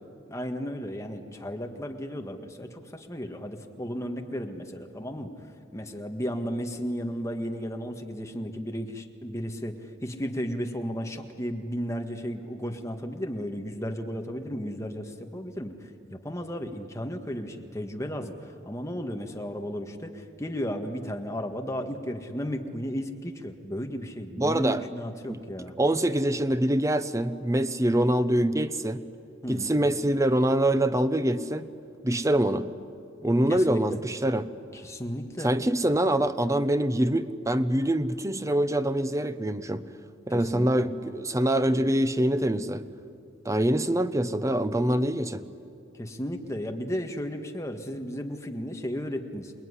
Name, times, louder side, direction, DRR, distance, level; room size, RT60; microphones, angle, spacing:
voice 1, 0.3-5.3 5.7-25.7 29.4-29.7 33.5-33.8 34.7-35.5 40.3-40.9 45.9-49.5, equal, 15° left, 4 dB, 1.8 m, -34 dB
voice 2, 24.4-24.8 25.3-25.4 25.8-29.0 29.5-31.7 32.0-32.7 33.2-34.5 35.4-39.8 40.3-42.8 43.4-45.4, right 1 dB, 15° right, 11 dB, 0.8 m, -25 dB
27.5 x 20.0 x 9.9 m, 2.4 s
head